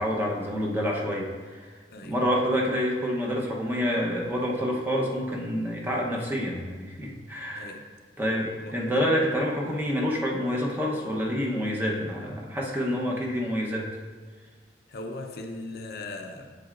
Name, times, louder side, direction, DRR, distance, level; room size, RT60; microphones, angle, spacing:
voice 1, 0.0-1.8 2.0-7.8 8.2-13.9, equal, 10° right, -2 dB, 0.9 m, -28 dB
voice 2, 7.5-7.9 8.6-8.8 14.9-16.5, left 2 dB, 60° left, 4 dB, 0.6 m, -38 dB
7.8 x 7.4 x 2.5 m, 1.5 s
head